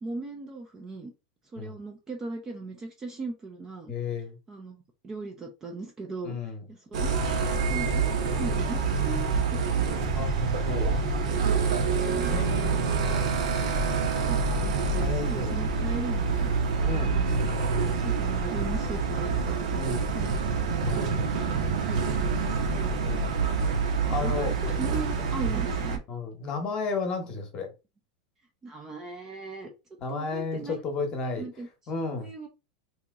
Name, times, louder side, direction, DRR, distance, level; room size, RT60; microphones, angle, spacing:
voice 1, 0.0-1.1 1.5-3.9 4.5-4.8 5.0-6.4 6.7-7.4 7.6-10.1 14.1-16.5 16.9-17.5 17.9-20.3 20.9-21.1 21.9-22.0 22.3-23.0 24.0-26.0 28.6-29.7 30.1-30.8 31.2-31.7 32.2-32.5, right 3 dB, 15° right, 0.4 m, -39 dB
voice 2, 3.9-4.4 6.2-6.7 10.1-11.0 12.3-13.4 15.0-15.6 16.8-17.2 19.7-20.1 20.8-21.5 23.0-23.5 24.1-24.5 26.1-27.7 30.0-31.5 31.9-32.3, left 4 dB, 25° left, 0.9 m, -33 dB
sound 1, 6.9-26.0, right 4 dB, 75° right, 1.0 m, -27 dB
2.9 x 2.8 x 3.5 m
supercardioid pair, 175°, 4 cm